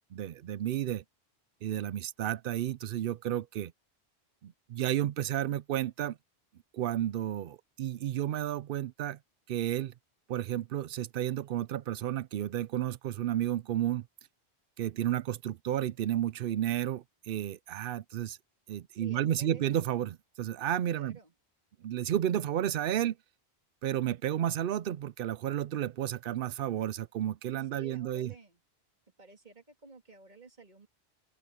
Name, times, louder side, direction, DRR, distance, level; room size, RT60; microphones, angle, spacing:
voice 1, 0.1-1.0 1.6-3.7 4.4-6.2 6.7-9.2 9.5-9.9 10.3-14.1 14.8-18.4 18.7-21.2 21.8-23.2 23.8-28.3, right 11 dB, 65° right, 0.7 m, -32 dB
voice 2, 18.9-19.7 20.9-21.3 27.6-28.6 29.2-30.9, right 5 dB, 45° right, 3.0 m, -53 dB
open air
omnidirectional pair, 1.1 m